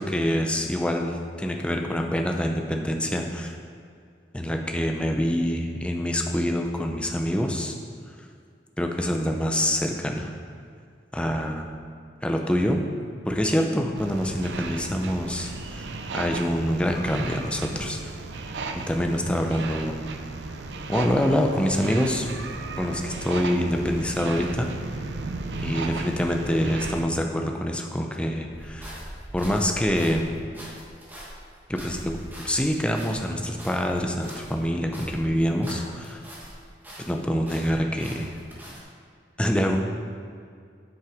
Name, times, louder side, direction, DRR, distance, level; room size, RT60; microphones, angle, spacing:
voice 1, 0.0-3.6 4.3-7.7 8.8-10.3 11.1-11.7 12.2-12.8 13.3-15.9 16.1-18.0 18.9-20.0 20.9-22.3 22.8-24.7 25.6-29.0 29.3-30.3 31.7-32.2 32.4-36.2 37.0-38.3 39.4-39.8, equal, 5° left, 2 dB, 0.6 m, -25 dB
sound 1, 14.0-27.0, right 3 dB, 90° right, 0.6 m, -35 dB
sound 2, 28.5-36.6 36.8-38.8, equal, 10° right, 1.5 m, -42 dB
7.7 x 6.2 x 5.0 m, 2.3 s
head